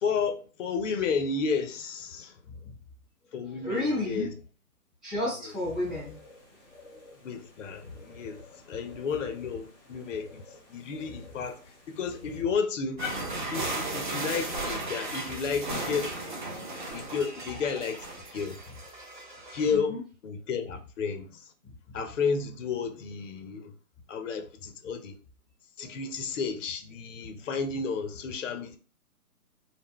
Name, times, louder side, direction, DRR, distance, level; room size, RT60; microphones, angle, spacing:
voice 1, 0.0-2.4 3.3-4.3 5.4-5.5 7.2-10.4 10.7-11.6 11.9-13.2 13.5-16.1 16.6-18.0 18.3-18.6 19.5-21.5 21.9-23.7 24.1-25.2 25.8-28.8, left 5 dB, 60° left, 0.5 m, -32 dB
voice 2, 3.6-4.3 5.0-6.2 19.7-20.0 21.6-21.7 25.8-25.9, left 1 dB, ahead, 0.8 m, -31 dB
sound 1, 5.5-12.4, left 2 dB, 25° left, 1.0 m, -53 dB
sound 2, 13.0-19.8, right 2 dB, 35° right, 0.4 m, -35 dB
2.1 x 2.0 x 3.5 m
figure-of-eight pair, 135°, 44 cm